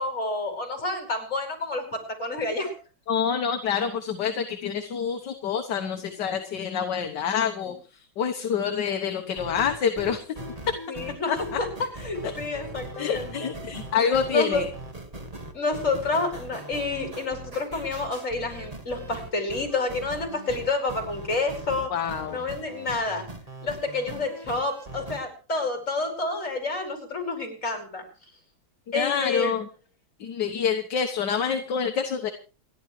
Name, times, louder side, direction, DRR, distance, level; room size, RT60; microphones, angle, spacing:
voice 1, 0.0-2.8 7.6-7.7 10.9-13.5 14.3-14.6 15.5-21.9 22.3-23.2 23.6-28.0 28.9-29.5, left 3 dB, 35° left, 3 dB, 5.5 m, -29 dB
voice 2, 3.1-7.7 8.2-10.2 10.7-10.8 11.3-11.4 12.2-12.3 13.0-14.7 21.9-22.4 28.9-29.7 30.2-32.3, left 7 dB, 60° left, 5 dB, 1.7 m, -27 dB
sound 1, 9.3-25.2, right 1 dB, 20° right, 1.7 m, -40 dB
29.0 x 11.0 x 3.2 m, 0.35 s
omnidirectional pair, 2.3 m